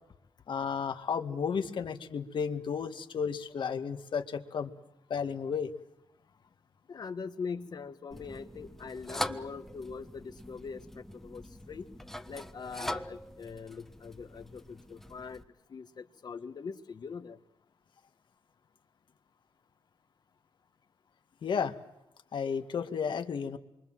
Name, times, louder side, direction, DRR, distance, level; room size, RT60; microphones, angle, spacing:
voice 1, 0.5-4.7 5.1-5.7 21.4-21.7 22.3-23.6, left 6 dB, 65° left, 7 dB, 2.0 m, -33 dB
voice 2, 6.9-11.9 12.3-15.4 15.7-17.4, left 5 dB, 50° left, 9 dB, 1.6 m, -42 dB
sound 1, 8.1-15.4, left 1 dB, 5° left, 1.3 m, -42 dB
27.5 x 24.0 x 7.6 m, 0.88 s
wide cardioid pair, 125°, 9 cm